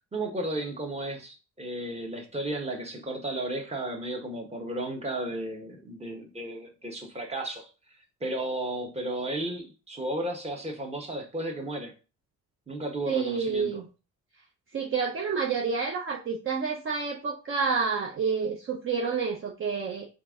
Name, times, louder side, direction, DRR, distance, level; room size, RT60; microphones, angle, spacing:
voice 1, 0.1-7.7 8.2-11.9 12.7-13.8, right 1 dB, 20° right, 2 dB, 1.3 m, -34 dB
voice 2, 13.1-13.9 14.7-20.1, right 5 dB, 45° right, 1 dB, 0.7 m, -29 dB
4.4 x 2.7 x 3.7 m, 0.32 s
cardioid pair, 90°, 30 cm